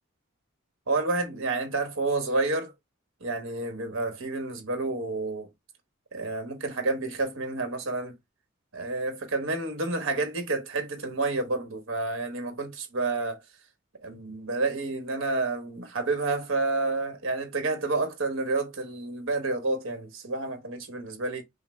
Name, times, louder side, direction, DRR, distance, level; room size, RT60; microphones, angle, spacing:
voice 1, 0.9-2.7 3.2-5.5 6.1-8.2 8.7-13.4 14.0-21.4, right 3 dB, 70° right, 1.1 m, -29 dB
5.7 x 2.0 x 3.2 m
head